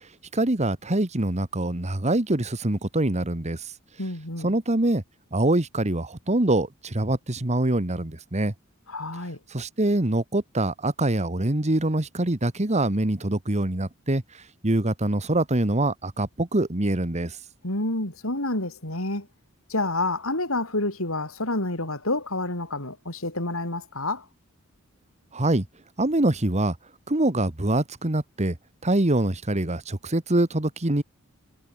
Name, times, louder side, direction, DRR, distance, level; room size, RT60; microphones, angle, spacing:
voice 1, 0.3-3.7 4.4-5.0 5.3-8.5 9.5-14.2 14.6-17.4 25.3-25.6 26.0-26.7 27.1-28.5 28.8-31.0, right 1 dB, 30° right, 1.6 m, -24 dB
voice 2, 4.0-4.5 8.9-9.4 17.6-19.3 19.7-24.2, left 2 dB, 70° left, 6.8 m, -28 dB
head